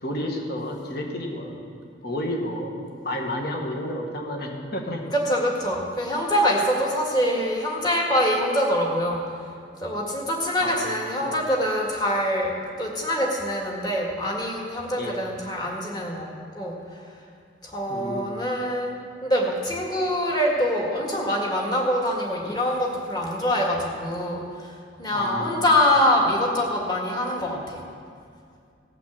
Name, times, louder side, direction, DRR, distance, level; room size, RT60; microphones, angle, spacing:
voice 1, 0.0-1.6 2.0-2.8 3.0-5.0 10.6-10.8 11.2-11.4 15.0-15.2 17.9-18.3 25.1-25.7, left 1 dB, 50° left, 1 dB, 1.8 m, -30 dB
voice 2, 5.1-9.2 9.8-17.0 17.6-27.9, equal, 20° left, -1 dB, 1.9 m, -25 dB
17.5 x 5.9 x 7.3 m, 2.3 s
head